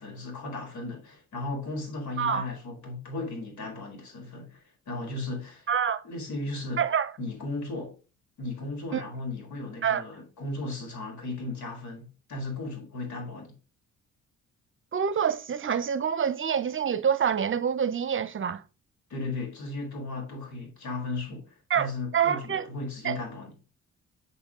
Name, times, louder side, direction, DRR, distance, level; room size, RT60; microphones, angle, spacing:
voice 1, 0.0-5.7 6.0-6.8 7.2-8.0 8.4-13.5 19.1-23.5, left 2 dB, 70° left, 4.7 m, -36 dB
voice 2, 5.7-6.0 6.8-7.1 8.9-9.0 9.8-10.0 14.9-18.6 21.7-22.7 23.0-23.2, right 7 dB, 40° right, 0.8 m, -26 dB
7.1 x 6.8 x 3.8 m
cardioid pair, 90°, 30 cm